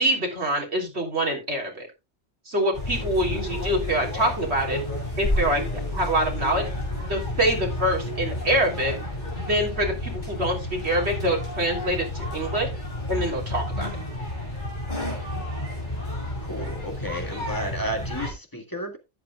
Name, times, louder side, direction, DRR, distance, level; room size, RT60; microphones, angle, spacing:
voice 1, 0.0-1.9 2.5-4.8 5.2-5.6 5.9-6.7 7.1-8.9 9.3-12.7 13.1-13.9, right 1 dB, 65° right, 3.8 m, -25 dB
sound 1, 2.7-18.3, left 1 dB, 40° left, 7.1 m, -31 dB
voice 2, 16.4-19.0, equal, 20° left, 1.9 m, -32 dB
13.0 x 10.0 x 2.4 m
omnidirectional pair, 1.2 m